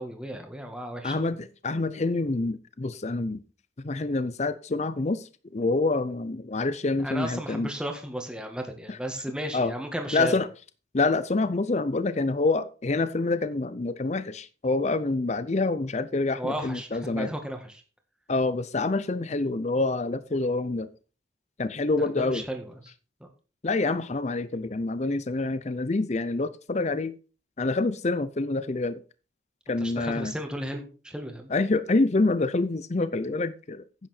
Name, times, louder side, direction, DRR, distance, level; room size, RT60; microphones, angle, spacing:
voice 1, 0.0-1.4 7.0-10.3 16.4-17.8 22.0-22.7 23.2-23.3 29.8-31.5, right 1 dB, 5° right, 1.7 m, -34 dB
voice 2, 1.0-3.4 3.8-7.7 8.9-9.0 9.5-9.7 10.1-10.5 10.9-17.3 18.3-20.9 21.6-22.4 23.6-27.2 27.6-29.0 29.7-30.3 31.5-33.8, left 3 dB, 35° left, 0.6 m, -27 dB
10.5 x 8.9 x 4.3 m
head